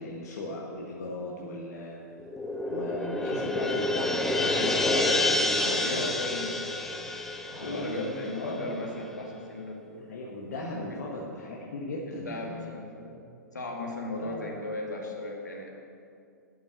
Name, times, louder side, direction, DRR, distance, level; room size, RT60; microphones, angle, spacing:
voice 1, 0.0-2.0 2.7-6.1 7.5-8.1 8.3-8.8 9.9-12.8 14.2-14.5, left 2 dB, 60° left, -3 dB, 1.6 m, -37 dB
cymbal roll quiet, 2.2-8.8, left 2 dB, 5° left, 0.8 m, -28 dB
voice 2, 5.6-6.9 7.6-10.0 10.9-11.0 12.1-13.2 13.5-15.7, left 2 dB, 75° left, 0 dB, 2.2 m, -36 dB
12.0 x 6.2 x 8.1 m, 2.3 s
figure-of-eight pair, 105°, 10 cm